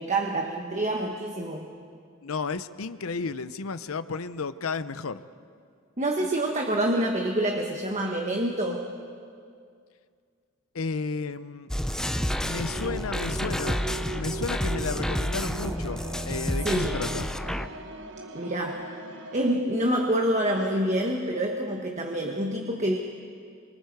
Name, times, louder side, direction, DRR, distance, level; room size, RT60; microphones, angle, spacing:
voice 1, 0.0-1.7 6.0-8.9 16.6-17.1 18.3-18.9 19.3-23.0, right 1 dB, 35° right, 1 dB, 1.4 m, -27 dB
voice 2, 2.2-5.2 10.7-11.7 12.4-13.8 14.1-17.3, left 4 dB, 90° left, 13 dB, 0.7 m, -33 dB
sound 1, 11.7-17.7, equal, 5° left, 0.7 m, -30 dB
sound 2, 11.9-19.5, right 2 dB, 60° right, 1.4 m, -40 dB
27.0 x 25.0 x 4.8 m, 2.2 s
head